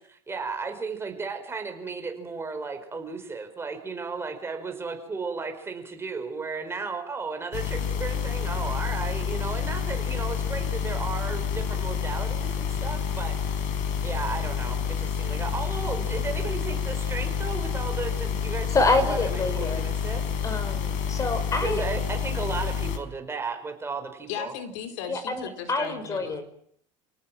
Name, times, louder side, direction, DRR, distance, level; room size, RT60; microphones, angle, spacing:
voice 1, 0.1-13.7 14.0-20.2 21.6-24.5, right 4 dB, 15° right, 6 dB, 5.2 m, -34 dB
sound 1, 7.5-23.0, left 8 dB, 55° left, 4.6 m, -29 dB
voice 2, 18.7-19.8 20.4-21.8 25.1-26.4, left 2 dB, 20° left, 10 dB, 5.6 m, -26 dB
voice 3, 24.3-26.4, left 8 dB, 75° left, 8 dB, 4.3 m, -36 dB
29.5 x 18.0 x 7.7 m, 0.66 s
supercardioid pair, 130°, 16 cm